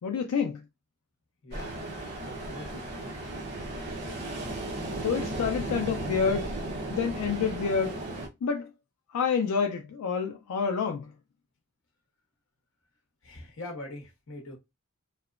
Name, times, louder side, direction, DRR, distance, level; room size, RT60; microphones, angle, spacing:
voice 1, 0.0-0.6 5.0-6.5 6.9-8.0 8.4-8.7 9.1-11.1, left 6 dB, 85° left, 0.4 m, -28 dB
voice 2, 1.4-1.9 2.2-2.9 13.2-14.6, left 2 dB, 60° left, 0.8 m, -43 dB
Ocean, 1.5-8.3, right 2 dB, 50° right, 0.7 m, -35 dB
2.8 x 2.1 x 2.4 m
head